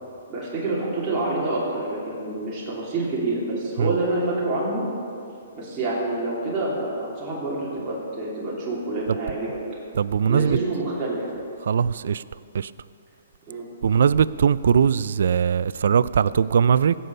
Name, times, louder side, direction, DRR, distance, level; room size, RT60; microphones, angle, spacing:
voice 1, 0.3-4.8 5.5-9.6 10.3-11.2 13.5-13.7, right 2 dB, 20° right, -7 dB, 3.0 m, -27 dB
voice 2, 9.9-10.6 11.6-12.2 12.5-12.7 13.8-17.0, right 7 dB, 70° right, 18 dB, 0.3 m, -20 dB
16.5 x 6.9 x 5.5 m, 2.6 s
hypercardioid pair, 140°, 0 cm